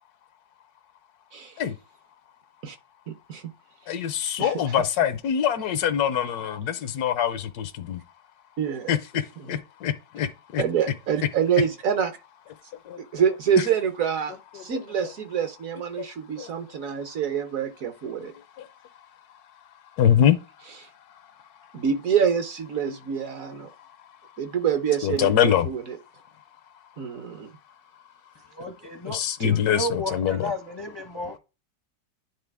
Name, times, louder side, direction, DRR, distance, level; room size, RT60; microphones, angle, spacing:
voice 1, 3.9-8.0 8.9-10.6 12.9-13.0 14.5-14.8 16.0-16.1 16.4-16.5 18.6-18.7 20.0-20.4 25.0-25.7 29.1-30.5, left 9 dB, 75° left, 1.1 m, -24 dB
voice 2, 8.6-9.0 9.5-9.6 10.6-12.2 13.0-18.3 21.7-23.7 24.4-26.0 27.0-27.5 29.4-29.5, right 8 dB, 65° right, 1.0 m, -26 dB
voice 3, 28.6-29.2 29.7-31.4, left 1 dB, 30° left, 0.5 m, -32 dB
9.8 x 3.7 x 3.4 m
omnidirectional pair, 1.8 m